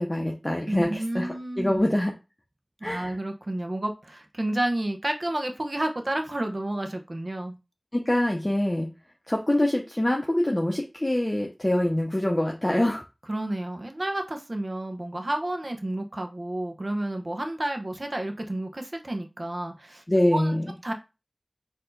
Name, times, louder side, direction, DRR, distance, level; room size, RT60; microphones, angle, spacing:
voice 1, 0.0-2.1 2.8-3.2 7.9-8.9 9.3-13.0 20.1-20.7, left 1 dB, 30° left, 0 dB, 0.8 m, -25 dB
voice 2, 0.7-1.8 2.8-7.6 13.3-20.0 20.3-20.6 20.8-20.9, right 1 dB, 55° right, 5 dB, 0.9 m, -30 dB
4.6 x 2.8 x 3.9 m, 0.28 s
wide cardioid pair, 45°, 0 cm